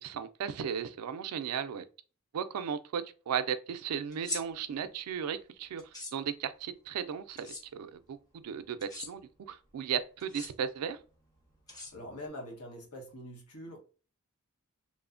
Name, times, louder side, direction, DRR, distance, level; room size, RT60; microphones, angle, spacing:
voice 1, 0.0-1.8 2.3-8.2 8.4-11.0, right 7 dB, 80° right, 0.3 m, -36 dB
sound 1, 4.1-4.4 5.8-6.1 7.4-7.6 8.8-9.1 10.2-10.5 11.7-12.3, left 1 dB, 15° left, 0.7 m, -40 dB
voice 2, 11.7-13.8, left 1 dB, 90° left, 1.0 m, -44 dB
3.0 x 2.1 x 2.4 m
head